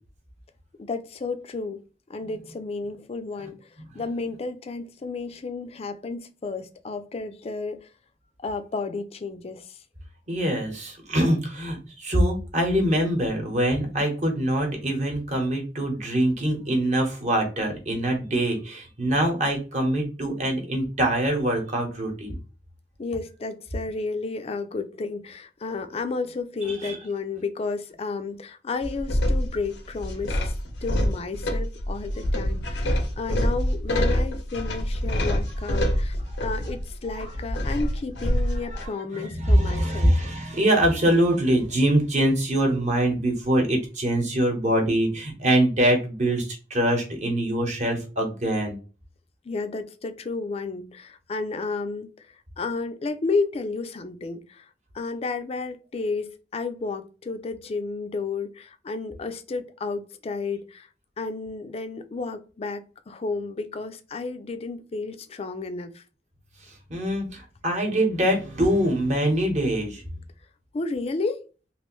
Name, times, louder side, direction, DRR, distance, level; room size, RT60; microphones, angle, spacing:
voice 1, 0.8-1.8 2.1-3.6 3.9-7.9 8.4-9.8 23.0-30.5 30.8-40.1 49.4-54.7 54.9-60.9 61.2-66.0 70.7-71.4, left 3 dB, 35° left, 0.4 m, -32 dB
voice 2, 10.3-22.3 26.6-27.0 38.7-48.8 66.9-70.0, right 1 dB, 40° right, 1.0 m, -24 dB
sound 1, 28.8-38.9, equal, 90° left, 0.7 m, -26 dB
3.1 x 2.5 x 3.0 m
head